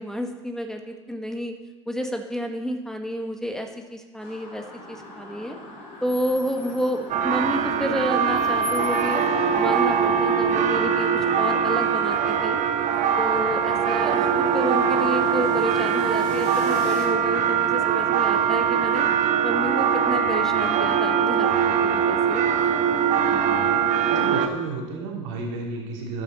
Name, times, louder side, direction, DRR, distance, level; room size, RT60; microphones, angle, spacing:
voice 1, 0.0-1.5 1.9-5.6 6.0-9.2 9.6-12.6 13.2-19.0 19.4-22.4, equal, 5° left, 4 dB, 1.6 m, -30 dB
sound 1, 4.2-17.1, left 2 dB, 50° left, 4.3 m, -40 dB
sound 2, 7.1-24.5, right 7 dB, 50° right, 1.0 m, -22 dB
voice 2, 23.1-23.8 24.1-26.2, right 4 dB, 75° right, -2 dB, 3.4 m, -32 dB
12.5 x 10.5 x 4.2 m, 1.1 s
hypercardioid pair, 70°, 16 cm